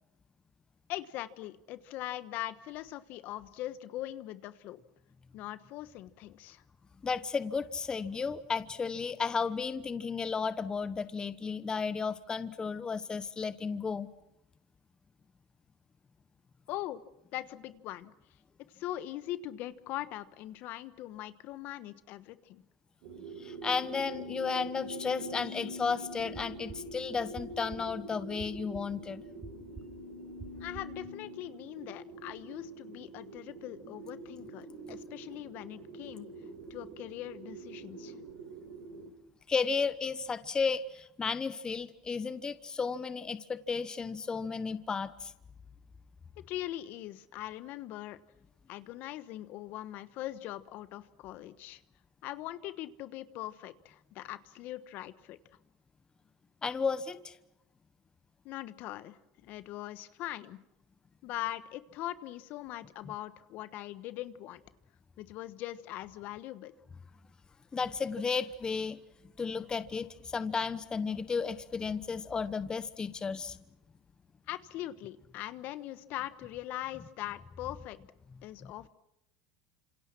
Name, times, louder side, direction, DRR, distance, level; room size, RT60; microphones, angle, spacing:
voice 1, 0.9-4.8 5.3-6.6 16.7-17.0 17.3-18.1 18.7-22.6 30.6-36.3 36.7-38.1 46.5-48.2 48.7-51.8 52.2-55.4 58.4-60.6 61.2-64.6 65.2-66.7 74.5-78.0 78.4-78.9, left 14 dB, 60° left, 14 dB, 1.2 m, -41 dB
voice 2, 7.0-14.1 23.4-29.2 39.5-45.3 56.6-57.4 67.7-69.0 69.4-73.6 78.6-78.7, left 5 dB, 20° left, 14 dB, 1.0 m, -33 dB
sound 1, 23.0-39.1, equal, 70° right, 4.1 m, -45 dB
sound 2, 26.1-31.1, right 5 dB, 30° right, 6.7 m, -50 dB
28.5 x 27.0 x 6.1 m, 0.83 s
supercardioid pair, 105°, 4 cm